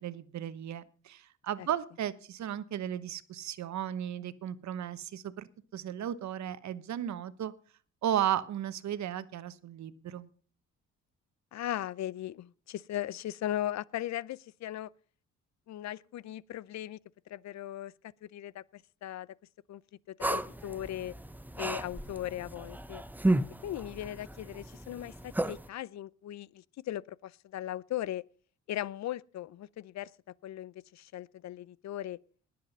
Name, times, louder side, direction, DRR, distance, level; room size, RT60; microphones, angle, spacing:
voice 1, 0.0-7.5 8.0-10.3, right 10 dB, 65° right, 1.1 m, -35 dB
voice 2, 11.5-14.9 15.7-17.0 17.3-17.9 18.2-19.3 19.7-19.8 20.1-21.1 21.6-23.0 23.6-28.2 28.7-30.1 30.4-32.2, left 13 dB, 65° left, 0.6 m, -38 dB
sound 1, 20.2-25.7, right 1 dB, 5° right, 0.7 m, -34 dB
20.0 x 7.8 x 5.4 m
cardioid pair, 90°, 30 cm